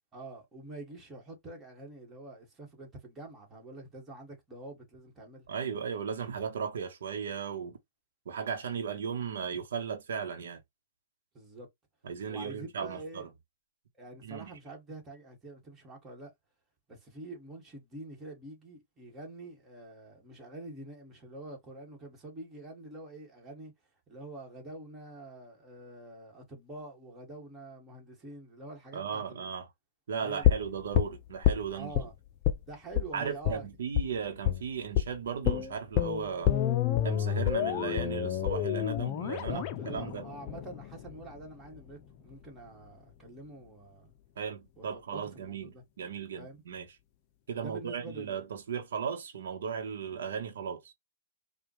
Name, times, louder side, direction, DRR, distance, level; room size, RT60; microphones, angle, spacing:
voice 1, 0.1-5.5 11.3-11.7 12.3-13.2 14.0-16.3 16.9-23.7 24.1-29.5 30.2-30.6 31.7-32.1 32.7-33.7 39.3-44.1 44.8-45.8 46.4-46.6 47.6-48.4, right 2 dB, 15° right, 1.6 m, -46 dB
voice 2, 5.5-7.8 8.3-10.6 12.0-13.3 14.2-14.5 28.9-29.7 30.1-31.9 33.1-36.5 37.0-40.3 44.4-46.9 47.5-50.9, right 6 dB, 75° right, 0.9 m, -36 dB
sound 1, 30.4-32.1 32.4-32.6 32.9-33.1 33.4-33.6 34.0-34.1 34.5-34.6 35.0-35.1 35.5-41.4 41.7-41.8, left 11 dB, 35° left, 0.5 m, -28 dB
4.9 x 2.3 x 2.9 m
hypercardioid pair, 140°, 0 cm